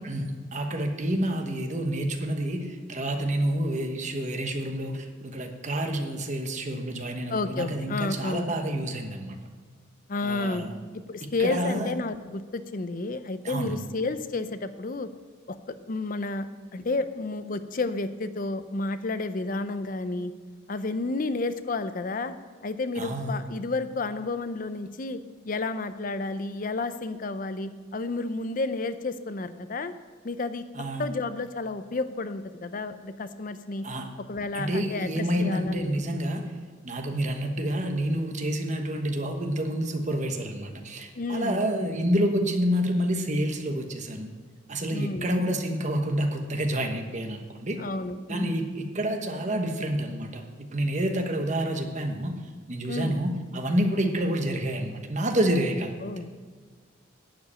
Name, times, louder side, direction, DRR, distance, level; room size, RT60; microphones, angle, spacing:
voice 1, 0.0-9.4 10.2-10.7 11.4-11.9 13.4-13.8 23.0-23.4 30.7-31.1 33.8-34.1 34.5-36.4 36.8-44.3 44.7-47.8 48.3-50.4 50.7-52.4 52.7-55.9, right 1 dB, 35° right, 4 dB, 1.1 m, -28 dB
voice 2, 7.3-8.5 10.1-10.7 11.1-15.1 15.5-15.6 15.9-16.5 16.7-20.3 20.7-22.3 22.6-25.2 25.5-29.9 30.2-30.6 31.0-33.9 34.3-36.0 41.1-41.6 44.9-45.3 47.8-48.6 52.9-53.1 56.0-56.4, left 3 dB, 45° left, 11 dB, 0.5 m, -31 dB
11.5 x 5.2 x 8.7 m, 1.5 s
head